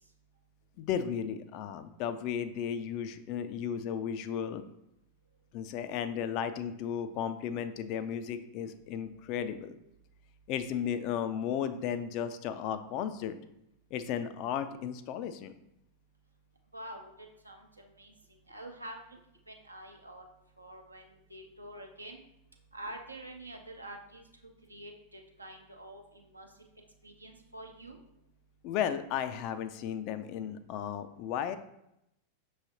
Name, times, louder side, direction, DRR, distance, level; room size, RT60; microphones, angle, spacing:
voice 1, 0.8-4.6 5.5-9.8 10.5-13.4 13.9-15.6 28.6-31.6, left 8 dB, 40° left, 11 dB, 0.3 m, -34 dB
voice 2, 16.7-17.7 18.0-18.1 18.5-19.0 19.5-20.2 20.6-22.2 22.7-24.2 24.7-26.5 27.0-28.0, right 1 dB, 85° right, 3 dB, 0.7 m, -46 dB
6.0 x 3.1 x 2.8 m, 0.82 s
figure-of-eight pair, 90°, 0 cm